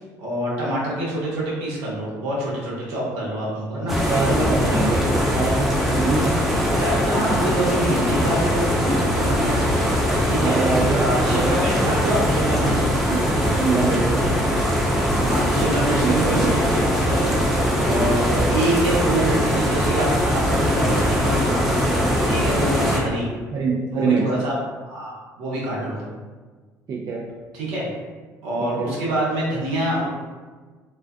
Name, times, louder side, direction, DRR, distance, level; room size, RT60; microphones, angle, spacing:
voice 1, 0.2-3.9 6.8-9.7 10.3-10.6 10.9-12.9 15.2-16.8 17.1-17.3 17.8-23.3 23.9-24.5 24.8-25.1 25.4-26.0 27.5-27.9 28.4-30.1, right 1 dB, 75° right, -6 dB, 0.8 m, -26 dB
voice 2, 3.7-6.4 10.3-11.0 11.3-11.6 12.8-13.3 13.6-14.3 16.0-16.6 17.7-18.2 23.5-24.3 25.8-26.1 26.9-27.3 28.6-28.9, right 4 dB, 45° right, -3 dB, 0.4 m, -25 dB
sound 1, 3.9-23.0, equal, ahead, 0.6 m, -21 dB
2.3 x 2.3 x 2.3 m, 1.4 s
hypercardioid pair, 55°, 9 cm